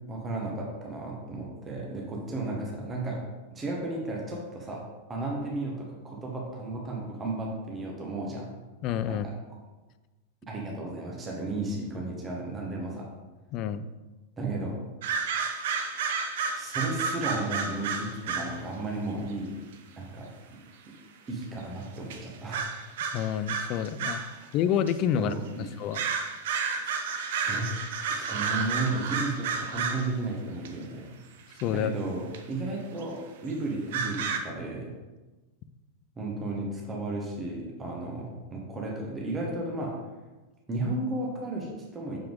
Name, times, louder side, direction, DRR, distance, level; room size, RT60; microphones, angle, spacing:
voice 1, 0.1-3.2 3.5-8.5 9.1-9.3 10.5-13.1 14.4-14.7 16.5-19.5 20.0-20.6 21.3-22.7 24.1-24.5 25.1-25.6 27.4-27.7 28.1-31.1 31.7-34.9 36.2-39.9 40.7-42.2, right 2 dB, 20° right, -2 dB, 1.5 m, -34 dB
voice 2, 8.8-9.3 13.5-13.9 23.1-24.2 24.5-26.0 31.6-31.9, left 9 dB, 40° left, 13 dB, 0.4 m, -28 dB
sound 1, 15.0-18.6 19.7-19.8 21.4-21.5 22.1-22.2 22.5-24.3 24.9-25.0 25.9-30.1 30.6-30.7 31.5-31.6 32.3-32.4 33.0-33.1 33.9-34.4, right 5 dB, 55° right, 0.8 m, -31 dB
7.0 x 5.6 x 3.6 m, 1.2 s
figure-of-eight pair, 90°, 0 cm